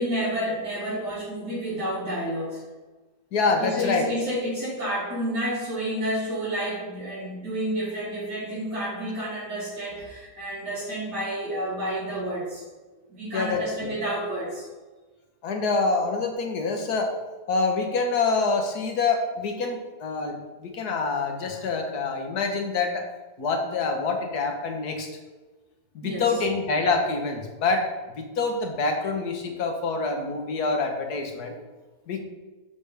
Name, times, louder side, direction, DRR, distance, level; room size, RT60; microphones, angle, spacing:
voice 1, 0.0-2.6 3.6-12.6 13.1-14.6 26.0-26.4, right 1 dB, 90° right, -10 dB, 3.3 m, -30 dB
voice 2, 3.3-4.1 13.3-13.9 15.4-17.1 17.5-23.1 23.4-25.1 25.9-31.5 32.1-32.2, left 4 dB, 70° left, 4 dB, 1.6 m, -26 dB
7.1 x 6.9 x 3.4 m, 1.2 s
omnidirectional pair, 1.7 m